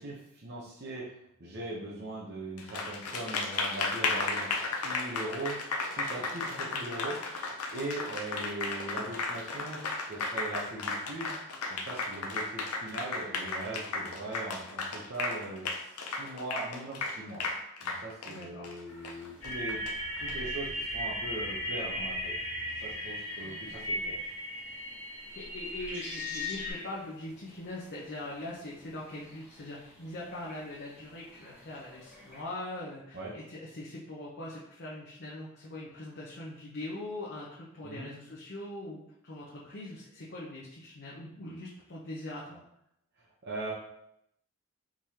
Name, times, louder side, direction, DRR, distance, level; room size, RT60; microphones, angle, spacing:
voice 1, 0.0-5.6 5.9-11.3 11.7-17.4 17.8-19.8 20.2-22.3 22.8-24.2 33.1-33.3 37.8-38.1 43.4-43.7, right 2 dB, 50° right, -5 dB, 0.8 m, -40 dB
Applause, 2.6-20.3, left 3 dB, 80° left, 0.6 m, -34 dB
voice 2, 18.3-18.7 23.4-23.7 25.3-42.6, left 1 dB, 50° left, -6 dB, 0.8 m, -42 dB
sound 1, 18.8-32.4, left 1 dB, 10° right, 1.8 m, -52 dB
sound 2, 19.4-26.7, left 1 dB, 65° left, 1.5 m, -36 dB
4.8 x 3.7 x 2.8 m, 0.77 s
head